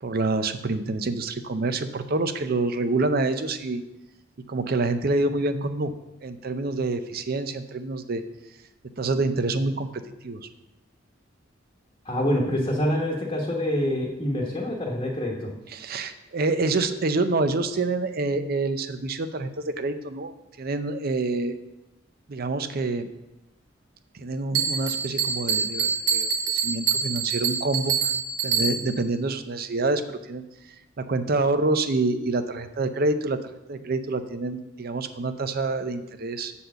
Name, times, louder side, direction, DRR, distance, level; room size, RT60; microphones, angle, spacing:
voice 1, 0.0-3.8 4.5-5.9 6.2-8.2 9.0-9.9 10.2-10.5 15.7-21.6 22.3-23.1 24.2-27.9 28.4-30.4 31.0-33.4 33.7-36.5, right 3 dB, 50° right, 10 dB, 0.6 m, -27 dB
voice 2, 12.0-15.5, left 1 dB, 30° left, -3 dB, 1.2 m, -26 dB
Bell, 24.5-29.1, right 6 dB, 85° right, 1.2 m, -26 dB
7.9 x 4.2 x 6.8 m, 0.93 s
head